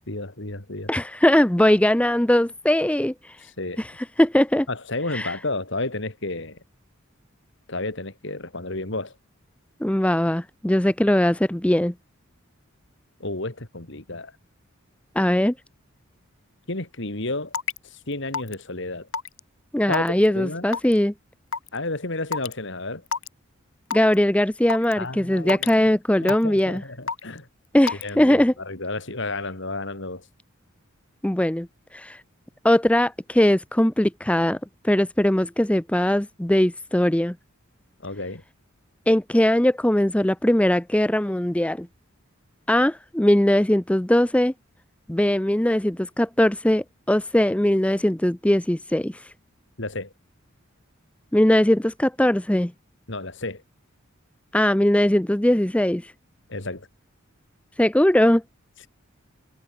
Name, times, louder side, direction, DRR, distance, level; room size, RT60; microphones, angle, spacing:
voice 1, 0.1-0.9 3.4-3.8 4.7-6.6 7.7-9.1 13.2-14.3 16.7-17.5 17.8-19.1 19.9-20.7 21.7-23.0 25.0-25.7 26.2-27.5 28.0-30.3 38.0-38.4 49.8-50.1 53.1-53.6 56.5-56.9, left 2 dB, 60° left, 2.8 m, -31 dB
voice 2, 0.9-3.4 3.8-3.9 4.2-4.7 5.1-5.3 9.8-11.9 15.2-15.5 19.7-21.1 23.9-26.8 27.7-28.5 31.2-31.7 31.9-32.2 32.6-34.6 34.8-37.4 39.1-41.9 42.7-44.5 45.1-49.2 51.3-52.7 54.5-56.1 57.8-58.4, left 1 dB, 5° left, 0.5 m, -20 dB
Raindrop / Water tap faucet / Drip, 17.5-17.8 18.3-18.6 19.1-19.4 19.9-20.3 20.7-20.9 21.5-21.7 22.3-22.5 23.1-23.3 23.9-24.1 24.7-24.9 25.5-25.7 26.3-26.6 27.1-27.4 27.9-28.1, left 5 dB, 75° left, 2.0 m, -28 dB
head